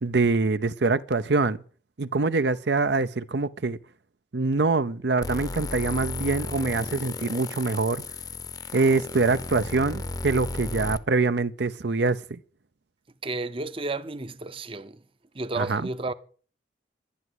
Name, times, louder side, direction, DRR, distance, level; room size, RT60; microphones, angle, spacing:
voice 1, 0.0-1.6 2.0-3.8 4.3-8.0 8.7-12.4 15.6-15.8, right 3 dB, 70° right, 0.7 m, -24 dB
sound 1, 5.2-11.0, left 3 dB, 20° left, 0.8 m, -34 dB
voice 2, 13.2-15.0 15.3-16.1, right 2 dB, 30° right, 0.7 m, -32 dB
11.5 x 11.0 x 8.0 m
head